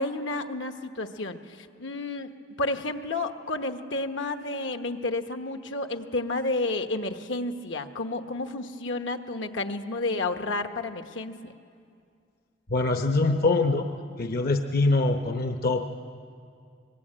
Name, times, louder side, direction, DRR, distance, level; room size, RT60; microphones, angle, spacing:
voice 1, 0.0-2.3 2.6-11.5, left 2 dB, 75° left, 7 dB, 1.2 m, -31 dB
voice 2, 12.7-13.9 14.2-15.9, left 2 dB, 50° left, 5 dB, 0.9 m, -24 dB
24.5 x 21.0 x 8.8 m, 2.3 s
head